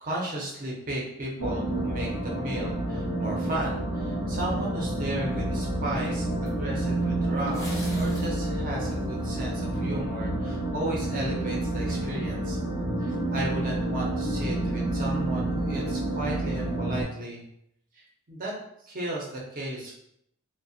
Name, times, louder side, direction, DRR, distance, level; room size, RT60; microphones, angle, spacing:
voice 1, 0.0-12.6 13.0-17.4 17.9-18.5 18.8-20.0, right 1 dB, 40° right, -3 dB, 0.6 m, -34 dB
sound 1, 1.4-17.0, right 1 dB, 65° left, 0.6 m, -29 dB
sound 2, 5.3-5.4 6.5-6.6 7.4-8.3 8.9-9.5, left 1 dB, 15° left, 0.5 m, -42 dB
2.4 x 2.1 x 2.5 m, 0.74 s
head